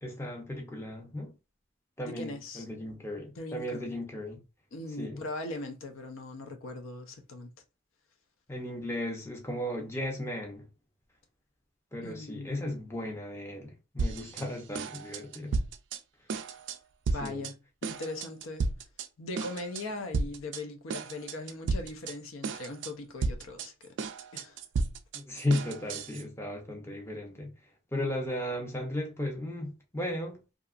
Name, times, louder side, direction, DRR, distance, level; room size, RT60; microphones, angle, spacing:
voice 1, 0.0-1.3 2.0-4.4 5.0-5.2 8.5-10.7 11.9-15.5 17.2-17.5 25.1-27.5 27.9-30.4, left 1 dB, 15° left, 0.6 m, -35 dB
voice 2, 2.0-2.6 3.4-4.0 4.7-7.5 12.0-12.9 17.1-17.6 17.8-18.6 19.2-23.9 24.3-24.6, left 2 dB, 80° left, 0.5 m, -40 dB
sound 1, 14.0-14.5 14.7-16.0 16.3-16.8 17.1-17.5 17.8-19.1 19.4-19.8 20.1-20.6 20.9-22.1 22.4-22.9 23.2-26.2, right 4 dB, 60° right, 0.3 m, -33 dB
2.8 x 2.4 x 2.3 m
head